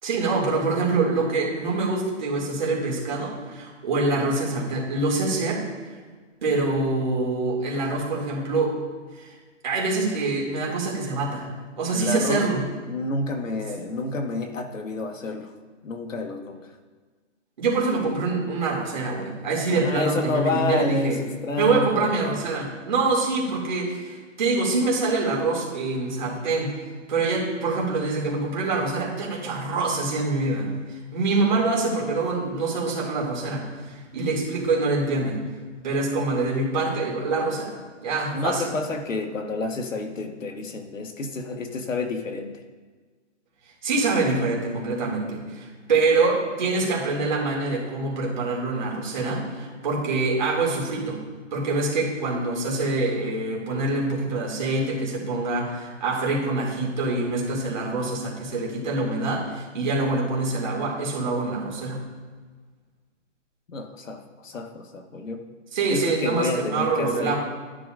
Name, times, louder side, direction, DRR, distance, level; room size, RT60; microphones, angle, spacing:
voice 1, 0.0-5.6 6.4-8.7 9.1-9.3 9.6-11.5 11.8-12.6 17.6-21.2 21.6-26.7 27.1-35.4 35.8-38.7 43.8-51.2 51.5-62.0 65.7-67.4, right 3 dB, 35° right, -3 dB, 2.6 m, -25 dB
voice 2, 11.9-12.5 12.9-15.5 15.8-16.7 19.7-22.4 38.3-42.6 63.7-65.5 65.9-67.3, left 3 dB, 85° left, 5 dB, 1.5 m, -29 dB
12.5 x 10.5 x 2.6 m, 1.4 s
hypercardioid pair, 175°, 38 cm